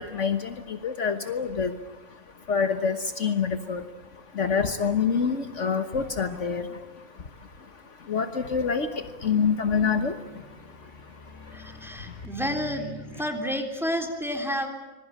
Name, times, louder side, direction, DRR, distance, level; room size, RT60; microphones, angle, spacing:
voice 1, 0.0-12.3, left 6 dB, 60° left, 9 dB, 1.6 m, -28 dB
sound 1, 8.3-13.2, right 1 dB, 35° left, 5.2 m, -47 dB
voice 2, 11.5-12.9 13.2-14.7, equal, ahead, 4 dB, 3.5 m, -30 dB
26.0 x 21.5 x 8.6 m, 1.1 s
omnidirectional pair, 1.4 m